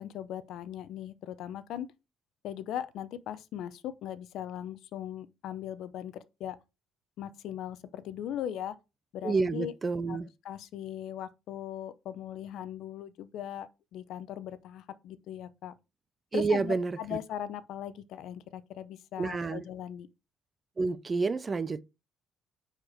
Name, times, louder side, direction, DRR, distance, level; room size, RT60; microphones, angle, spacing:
voice 1, 0.0-1.9 2.4-6.6 7.2-8.7 9.1-9.7 10.1-10.2 10.4-15.7 16.3-20.1, left 10 dB, 60° left, 0.7 m, -39 dB
voice 2, 9.2-10.3 16.3-16.9 19.2-19.6 20.8-21.8, right 4 dB, 20° right, 0.4 m, -29 dB
9.9 x 4.5 x 4.5 m
cardioid pair, 160°, 0 cm